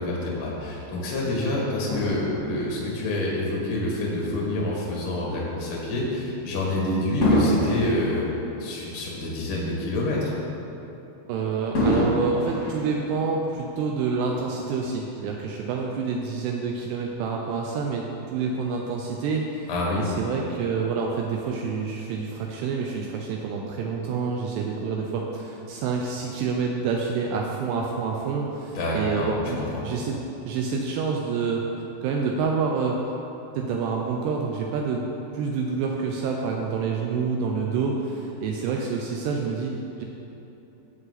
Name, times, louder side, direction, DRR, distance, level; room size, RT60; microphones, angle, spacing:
voice 1, 0.0-8.2 8.6-10.3 19.7-20.0 28.7-29.3 29.6-29.7, left 1 dB, 75° left, -3 dB, 1.1 m, -27 dB
Fireworks, 1.9-4.5 5.1-5.3 7.2-9.7 10.1-10.2 11.7-13.6 14.4-14.5, left 1 dB, 50° left, 1.2 m, -27 dB
voice 2, 11.3-18.0 18.3-29.6 29.8-30.2 30.5-31.6 32.0-33.0 33.6-35.1 35.3-40.1, right 5 dB, 80° right, 0 dB, 2.6 m, -27 dB
15.0 x 5.4 x 4.0 m, 3.0 s
omnidirectional pair, 5.2 m